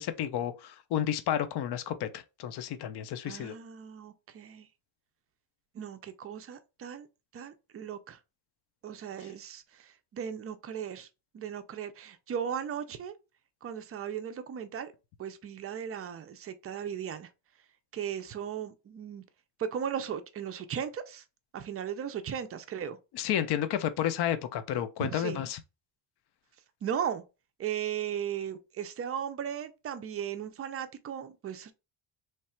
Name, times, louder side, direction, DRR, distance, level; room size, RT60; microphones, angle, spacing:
voice 1, 0.0-3.5 23.1-25.6, left 10 dB, 55° left, 0.6 m, -31 dB
voice 2, 3.2-4.7 5.7-7.1 7.3-8.2 8.8-11.1 11.3-13.1 13.6-14.9 15.2-17.3 17.9-19.2 19.6-21.2 21.5-23.0 25.0-25.5 26.8-27.2 27.6-31.7, right 8 dB, 30° right, 0.4 m, -37 dB
3.2 x 2.3 x 4.2 m
cardioid pair, 150°, 46 cm